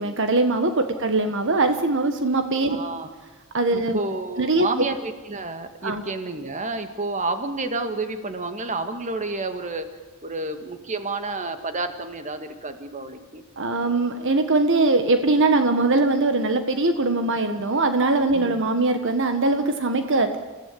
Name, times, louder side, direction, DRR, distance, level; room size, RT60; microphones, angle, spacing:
voice 1, 0.0-2.8 3.5-4.0 4.4-4.7 5.8-6.0 13.6-20.4, right 2 dB, 60° right, 8 dB, 1.5 m, -21 dB
voice 2, 2.7-3.1 3.7-9.9 10.2-13.5 18.3-18.6, right 3 dB, 35° right, 8 dB, 1.9 m, -30 dB
28.5 x 15.5 x 8.6 m, 1.3 s
head